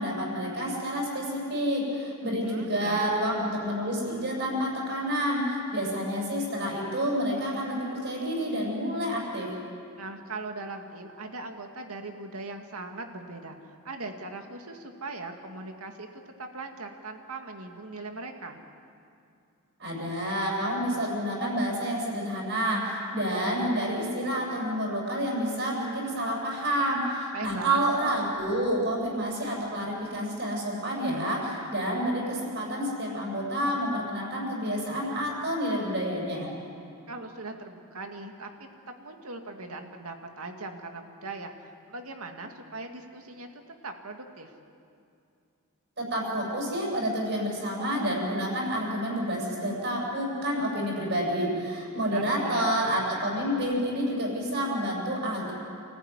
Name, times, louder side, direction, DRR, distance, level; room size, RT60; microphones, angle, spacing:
voice 1, 0.0-9.5 19.8-36.5 46.0-55.5, equal, 55° right, -3 dB, 7.8 m, -29 dB
voice 2, 2.2-3.1 10.0-18.6 27.3-27.8 37.1-44.5 52.0-52.7, right 3 dB, 85° right, 4 dB, 2.2 m, -40 dB
28.0 x 15.0 x 9.8 m, 2.5 s
head